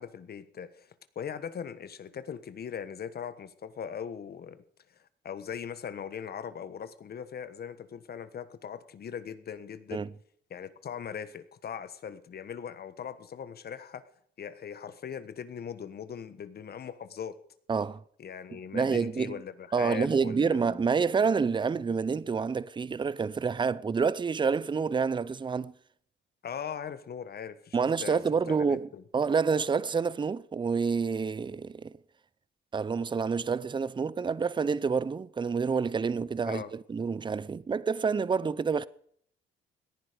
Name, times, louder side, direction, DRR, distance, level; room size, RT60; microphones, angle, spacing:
voice 1, 0.0-4.6 5.2-10.0 10.5-14.0 14.4-17.3 18.2-20.8 26.4-29.0 36.4-36.7, left 7 dB, 50° left, 1.3 m, -40 dB
voice 2, 17.7-18.0 18.7-19.4 19.7-25.7 27.7-31.9 32.7-38.9, right 5 dB, 25° right, 0.6 m, -28 dB
18.0 x 10.5 x 5.1 m
cardioid pair, 90°, 20 cm